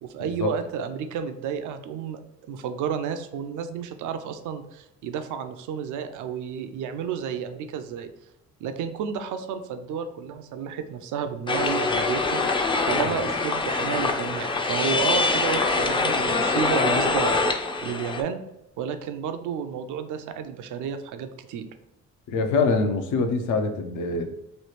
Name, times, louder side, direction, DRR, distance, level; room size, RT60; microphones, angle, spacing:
voice 1, 0.0-2.2 2.5-8.1 8.6-12.5 12.9-18.4 18.8-21.7, right 7 dB, 80° right, 9 dB, 0.5 m, -31 dB
sound 1, 11.5-18.2, left 3 dB, 15° left, 0.3 m, -24 dB
voice 2, 22.3-24.3, left 4 dB, 75° left, 5 dB, 0.6 m, -24 dB
3.1 x 2.4 x 3.1 m, 0.85 s
cardioid pair, 90°, 30 cm